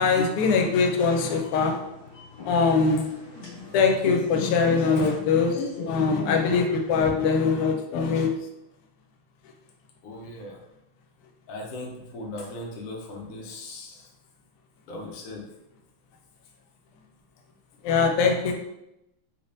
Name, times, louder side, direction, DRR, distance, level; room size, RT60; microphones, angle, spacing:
voice 1, 0.0-1.8 2.5-3.0 3.7-8.3 17.8-18.5, left 5 dB, 85° left, 3 dB, 1.5 m, -22 dB
sound 1, 0.9-7.0, left 4 dB, 45° left, 1.7 m, -37 dB
voice 2, 10.0-10.6 11.5-14.0 14.9-15.4, left 2 dB, 65° left, -1 dB, 0.9 m, -37 dB
3.5 x 3.3 x 2.6 m, 0.89 s
omnidirectional pair, 2.4 m